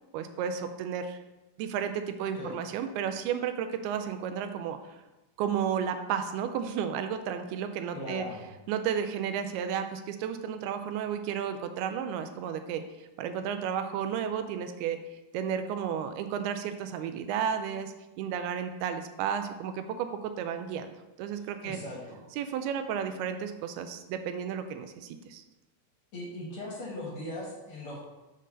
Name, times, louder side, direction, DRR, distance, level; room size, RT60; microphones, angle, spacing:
voice 1, 0.1-1.2 1.6-5.0 5.4-8.3 8.7-15.0 15.3-21.8 22.4-25.4, right 8 dB, 80° right, 8 dB, 2.4 m, -33 dB
voice 2, 2.2-2.6 7.9-8.4 21.6-22.2 26.1-28.1, left 1 dB, 60° left, -4 dB, 1.4 m, -39 dB
6.7 x 3.8 x 6.4 m, 1.0 s
omnidirectional pair, 4.6 m